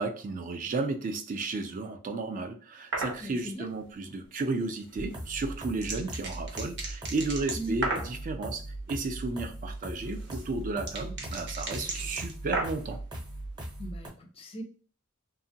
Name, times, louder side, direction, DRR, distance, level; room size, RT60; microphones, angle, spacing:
voice 1, 0.0-13.0, right 3 dB, 40° right, 0.3 m, -33 dB
sound 1, 2.9-3.2 5.1-8.2 9.8-13.0, right 3 dB, 55° right, 0.7 m, -35 dB
voice 2, 3.2-3.7 7.5-7.7 13.8-14.6, right 1 dB, 25° left, 0.5 m, -39 dB
sound 2, 5.0-14.1, right 1 dB, 20° right, 0.8 m, -39 dB
2.8 x 2.3 x 2.6 m
head